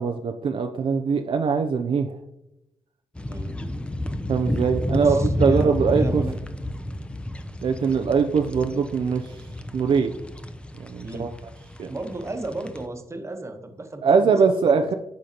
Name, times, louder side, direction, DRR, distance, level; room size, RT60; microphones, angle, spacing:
voice 1, 0.0-2.2 4.3-6.2 7.6-9.4 9.7-10.1 10.8-11.3 11.8-11.9 14.0-14.9, right 5 dB, 60° right, 5 dB, 0.4 m, -22 dB
sound 1, 3.2-12.8, left 1 dB, 10° left, 0.5 m, -30 dB
voice 2, 3.3-3.6 5.0-6.4 11.0-11.3 11.9-14.8, right 2 dB, 30° right, 6 dB, 1.0 m, -34 dB
11.5 x 3.9 x 2.9 m, 0.90 s
cardioid pair, 70°, 10 cm